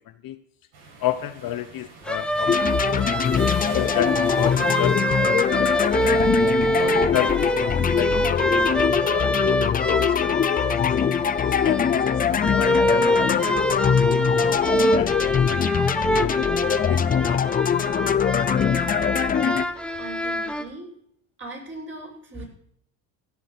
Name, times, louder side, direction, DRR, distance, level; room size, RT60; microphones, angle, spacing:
sound 1, 0.7-8.5, right 3 dB, 60° right, 6.3 m, -45 dB
voice 1, 1.0-3.3 3.7-5.3 5.6-6.2 6.8-8.9 9.2-10.3 10.7-10.9 11.4-12.0 12.3-15.6 16.1-16.2 16.7-17.6, left 13 dB, 50° left, 10 dB, 1.1 m, -32 dB
sound 2, 2.1-20.6, equal, ahead, 1.1 m, -25 dB
sound 3, 2.5-19.6, left 7 dB, 20° left, 0.5 m, -22 dB
voice 2, 20.0-20.9 21.4-22.4, right 2 dB, 25° right, -2 dB, 7.6 m, -39 dB
16.5 x 7.1 x 6.8 m, 0.69 s
supercardioid pair, 100°, 44 cm